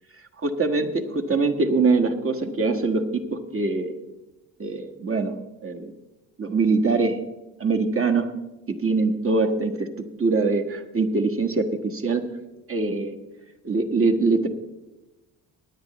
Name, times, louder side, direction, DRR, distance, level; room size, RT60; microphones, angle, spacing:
voice 1, 0.4-4.0 4.6-5.9 6.4-7.2 7.6-8.3 8.7-12.3 12.7-13.2 13.6-14.5, right 3 dB, 35° right, 4 dB, 1.5 m, -23 dB
19.0 x 9.8 x 3.1 m, 1.0 s
supercardioid pair, 70°, 40 cm